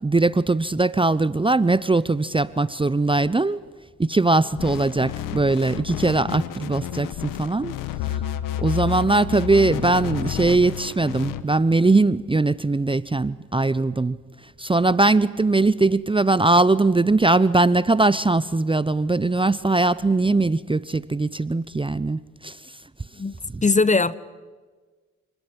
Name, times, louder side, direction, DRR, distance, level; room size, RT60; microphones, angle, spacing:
voice 1, 0.0-3.6 4.0-7.7 8.1-8.2 8.6-14.2 14.6-22.6 23.5-23.6, right 3 dB, 15° right, 0.8 m, -20 dB
sound 1, 4.5-11.4, left 12 dB, 85° left, 1.3 m, -30 dB
voice 2, 23.6-24.1, left 3 dB, 25° left, 1.0 m, -19 dB
28.5 x 20.5 x 9.9 m
supercardioid pair, 50°, 32 cm